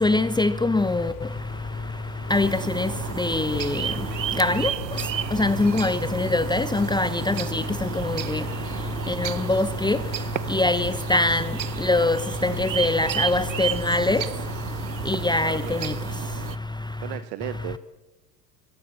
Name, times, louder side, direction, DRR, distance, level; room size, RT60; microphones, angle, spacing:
voice 1, 0.0-1.1 2.3-2.5 2.8-2.9 3.2-3.8 4.4-4.6 5.4-7.6 8.3-8.4 9.2-10.0 10.5-11.4 11.8-12.2 12.4-14.2 15.1-15.6, left 2 dB, 10° left, 0.9 m, -22 dB
sound 1, 0.7-13.6, left 8 dB, 40° left, 3.2 m, -41 dB
sound 2, 2.3-16.6, right 10 dB, 90° right, 0.8 m, -32 dB
voice 2, 15.4-16.1 17.0-17.8, right 14 dB, 50° right, 1.3 m, -36 dB
23.5 x 23.0 x 7.1 m
hypercardioid pair, 80°, 50 cm